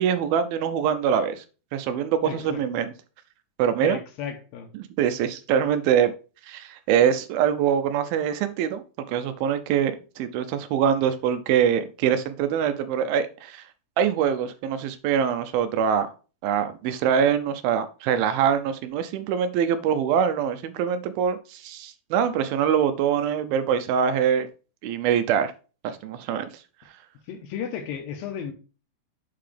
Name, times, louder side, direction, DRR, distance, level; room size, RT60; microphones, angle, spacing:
voice 1, 0.0-1.4 1.7-2.9 3.6-4.0 5.0-6.1 6.5-8.8 9.1-13.6 14.0-16.1 16.4-24.5 24.8-25.5 25.8-26.5, right 8 dB, 80° right, 2.5 m, -24 dB
voice 2, 2.2-2.9 3.8-4.7 27.3-28.5, left 8 dB, 75° left, 2.8 m, -34 dB
7.5 x 5.8 x 3.3 m
omnidirectional pair, 4.4 m